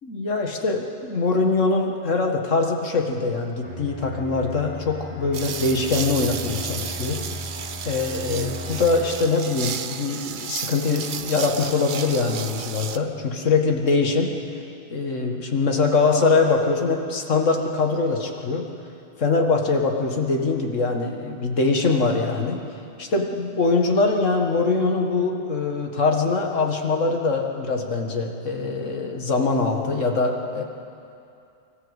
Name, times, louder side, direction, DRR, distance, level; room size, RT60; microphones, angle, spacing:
voice 1, 0.0-7.2 7.9-14.3 14.9-18.6 19.2-22.6 23.0-30.6, left 3 dB, 85° left, 2 dB, 2.1 m, -23 dB
Bowed string instrument, 3.6-9.3, left 1 dB, 10° left, 3.3 m, -36 dB
sound 1, 5.3-13.0, right 7 dB, 50° right, 0.7 m, -33 dB
25.0 x 14.0 x 8.1 m, 2.6 s
omnidirectional pair, 1.3 m